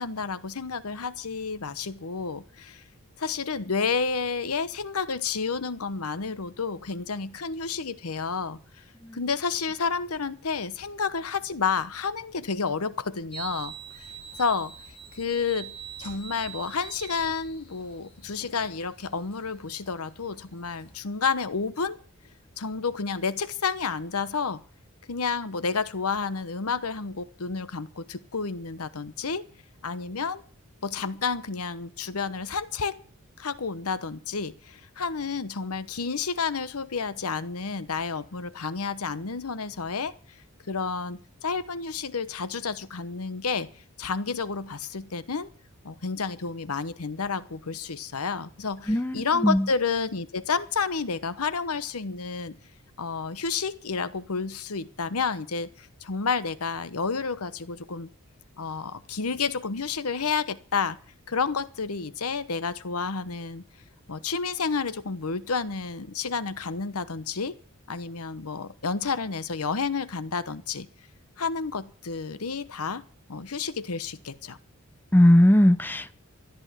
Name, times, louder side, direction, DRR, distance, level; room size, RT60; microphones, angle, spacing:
voice 1, 0.0-2.8 3.2-8.6 9.1-14.1 14.4-14.7 15.1-15.7 16.0-22.0 22.6-24.6 25.1-29.4 29.8-30.4 30.8-33.0 33.4-40.1 40.7-43.7 44.0-45.5 45.8-52.6 53.0-58.1 58.6-61.0 61.3-63.6 64.1-67.6 67.9-70.9 71.4-73.0 73.3-74.6, left 5 dB, 85° left, 1.0 m, -30 dB
sound 1, 13.3-21.0, right 7 dB, 25° left, 3.9 m, -44 dB
voice 2, 48.9-49.7 75.1-76.1, left 1 dB, 10° left, 0.6 m, -19 dB
14.0 x 10.5 x 7.4 m
head